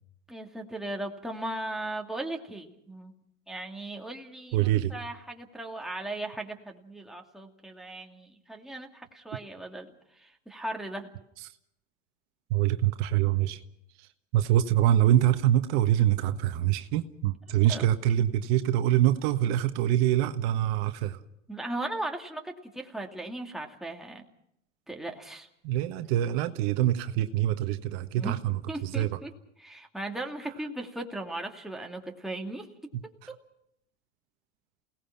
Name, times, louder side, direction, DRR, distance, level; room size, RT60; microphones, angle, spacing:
voice 1, 0.3-3.1 3.5-9.9 10.1-11.1 17.7-17.9 21.5-24.2 24.9-25.5 28.2-28.4 28.7-29.3 29.6-32.7 33.3-33.4, right 1 dB, ahead, 1 dB, 2.6 m, -37 dB
voice 2, 4.5-4.9 11.4-11.5 12.5-13.6 14.0-21.2 25.6-29.2 32.9-33.3, right 12 dB, 55° right, 8 dB, 1.4 m, -25 dB
29.0 x 18.5 x 6.0 m, 0.76 s
hypercardioid pair, 100°, 38 cm